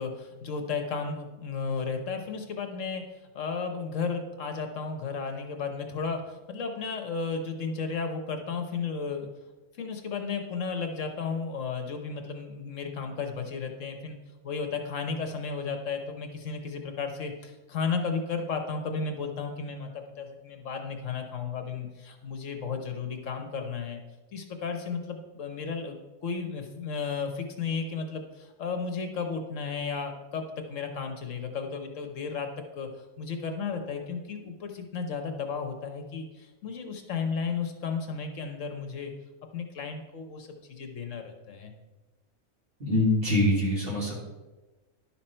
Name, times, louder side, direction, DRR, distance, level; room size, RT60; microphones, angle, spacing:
voice 1, 0.0-3.0 3.3-9.3 9.8-14.2 14.4-24.0 24.3-32.5 32.8-32.9 33.2-39.1 39.5-41.7, left 5 dB, 65° left, 4 dB, 1.3 m, -34 dB
voice 2, 42.8-44.3, left 1 dB, 45° right, -4 dB, 2.7 m, -24 dB
11.0 x 5.9 x 4.4 m, 1.1 s
omnidirectional pair, 1.4 m